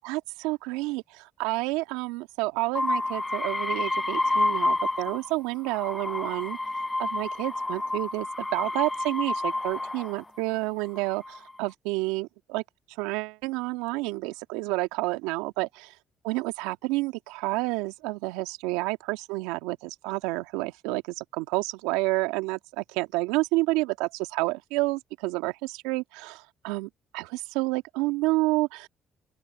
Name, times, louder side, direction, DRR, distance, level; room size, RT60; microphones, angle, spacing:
voice 1, 0.0-6.6 7.0-12.6 13.0-15.9 16.2-28.9, right 22 dB, 80° right, 1.7 m, -29 dB
sound 1, 2.7-5.3 5.6-10.2 10.9-11.5, left 2 dB, 20° left, 7.9 m, -29 dB
open air
hypercardioid pair, 50°, 0 cm